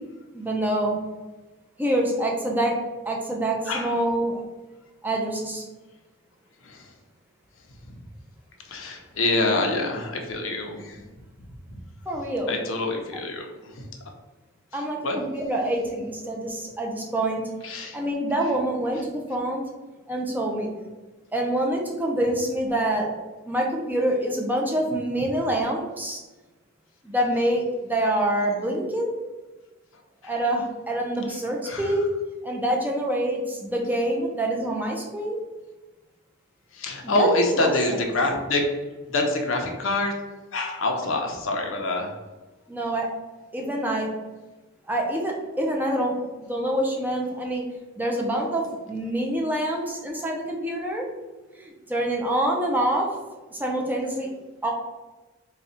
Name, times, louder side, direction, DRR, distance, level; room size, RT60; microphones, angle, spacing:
voice 1, 0.3-1.0 1.8-2.7 3.0-4.4 5.0-5.7 12.1-12.6 14.7-17.4 17.9-19.6 20.1-20.7 21.3-23.1 23.5-26.2 27.0-29.1 30.2-32.1 32.4-35.4 37.0-37.7 42.7-43.1 43.5-44.1 44.9-47.6 48.0-51.0 51.6-53.1 53.5-54.3 54.6-54.7, right 1 dB, 10° right, -1 dB, 0.6 m, -26 dB
voice 2, 8.7-11.0 12.5-13.5 15.0-15.2 17.6-18.0 31.7-31.9 36.7-38.7 39.1-40.1 40.5-42.1, left 2 dB, 70° left, 2 dB, 0.7 m, -25 dB
4.0 x 2.3 x 4.2 m, 1.2 s
head